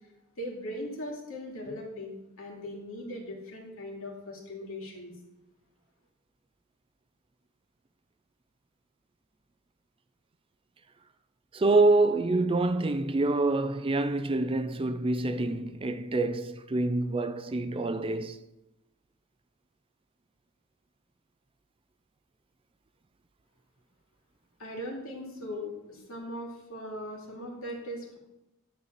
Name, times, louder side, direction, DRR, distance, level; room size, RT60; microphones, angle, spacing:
voice 1, 0.4-5.1 24.6-28.2, left 1 dB, 70° left, 2.6 m, -39 dB
voice 2, 11.5-18.4, right 2 dB, 25° right, 0.4 m, -26 dB
10.5 x 4.1 x 7.4 m
head